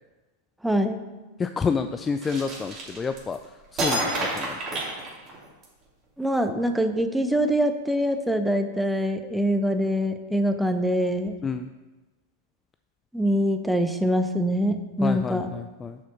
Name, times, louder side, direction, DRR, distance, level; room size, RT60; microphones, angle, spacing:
voice 1, 0.6-1.0 6.2-11.4 13.1-15.5, equal, ahead, 7 dB, 0.7 m, -24 dB
voice 2, 1.4-3.4 3.7-4.6 11.4-11.7 15.0-16.0, left 5 dB, 20° left, 9 dB, 0.3 m, -29 dB
sound 1, 2.2-3.4 3.8-5.6, right 2 dB, 30° right, 2.7 m, -29 dB
7.1 x 6.0 x 5.8 m, 1.2 s
figure-of-eight pair, 90°, 0 cm